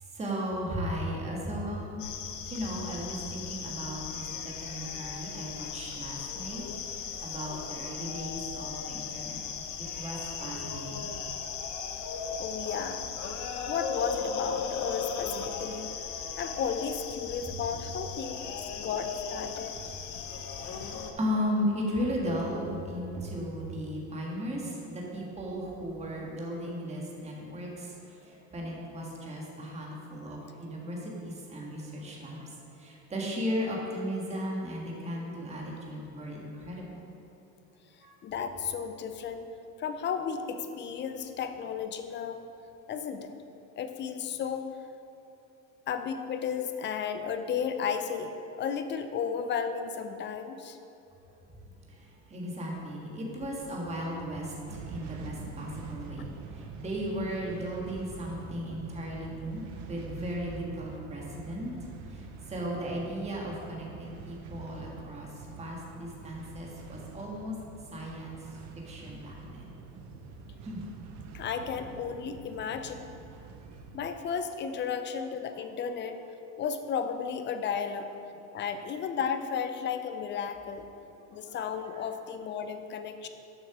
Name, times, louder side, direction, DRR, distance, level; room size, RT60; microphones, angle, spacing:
voice 1, 0.1-2.0 2.5-9.4 9.8-11.1 17.7-17.8 18.7-18.8 20.1-20.3 20.6-36.8 38.0-38.1 51.9-67.5 67.9-68.4 68.9-69.7 70.6-70.9 81.4-81.6 81.8-82.1, equal, 15° right, -3 dB, 1.6 m, -36 dB
sound 1, 2.0-21.1, left 6 dB, 50° left, 0.9 m, -37 dB
voice 2, 12.4-13.1 13.7-15.9 16.4-19.8 38.2-39.5 39.8-42.4 42.9-43.3 43.8-44.8 45.9-50.8 71.3-73.1 73.9-76.2 76.6-78.1 78.5-80.9 81.3-83.3, left 7 dB, 30° left, 8 dB, 0.6 m, -34 dB
sound 2, 54.6-74.1, right 4 dB, 50° right, 0.8 m, -45 dB
7.4 x 6.3 x 6.0 m, 2.9 s
supercardioid pair, 130°, 37 cm